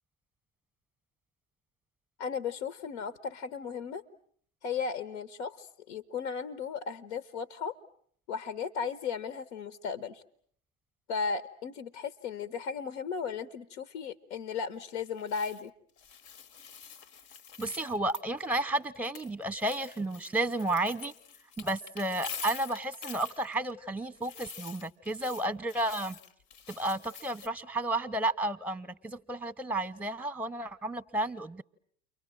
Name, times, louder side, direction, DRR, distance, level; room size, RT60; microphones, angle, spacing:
voice 1, 2.2-4.0 4.6-7.8 8.3-10.2 11.1-15.7, left 6 dB, 70° left, 16 dB, 1.2 m, -36 dB
sound 1, 15.0-15.7 16.0-18.4 18.8-23.7 24.2-27.5, left 7 dB, 55° left, 1.1 m, -46 dB
voice 2, 17.6-21.1 21.6-26.2 26.7-31.6, right 2 dB, 5° right, 18 dB, 1.1 m, -32 dB
30.0 x 24.0 x 7.7 m, 0.63 s
figure-of-eight pair, 75°, 35 cm